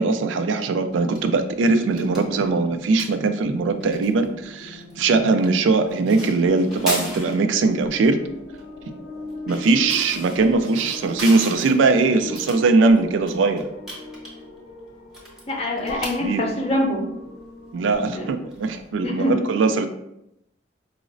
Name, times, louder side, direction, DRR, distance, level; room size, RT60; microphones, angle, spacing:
voice 1, 0.0-8.2 9.5-13.6 16.2-16.4 17.7-19.9, right 3 dB, 85° right, 8 dB, 0.3 m, -20 dB
sound 1, 0.9-19.3, equal, 5° right, 0.8 m, -39 dB
sound 2, 3.7-18.2, left 1 dB, 80° left, 0.6 m, -39 dB
voice 2, 15.5-17.0 18.1-18.3 19.0-19.4, left 1 dB, 35° left, 1 dB, 0.6 m, -24 dB
4.7 x 2.0 x 2.5 m, 0.83 s
head